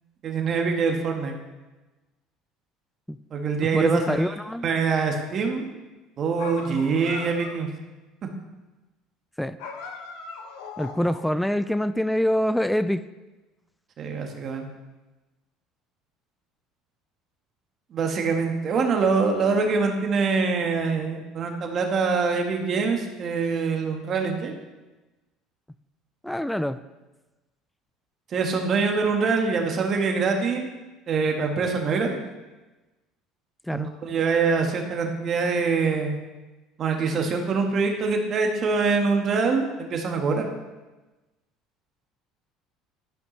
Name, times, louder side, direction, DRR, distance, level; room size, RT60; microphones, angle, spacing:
voice 1, 0.2-1.3 3.3-4.3 4.6-5.6 6.2-7.7 14.0-14.6 17.9-24.5 28.3-30.7 31.1-32.2 33.7-36.2 36.8-40.5, right 4 dB, 45° right, 3 dB, 1.4 m, -24 dB
voice 2, 3.7-4.7 9.4-9.6 10.8-13.0 26.2-26.8 33.7-33.9, equal, 5° left, 13 dB, 0.3 m, -25 dB
sound 1, 6.4-7.7 9.6-11.4, left 4 dB, 80° left, 0.9 m, -39 dB
12.5 x 5.3 x 3.2 m, 1.1 s
supercardioid pair, 85°, 0 cm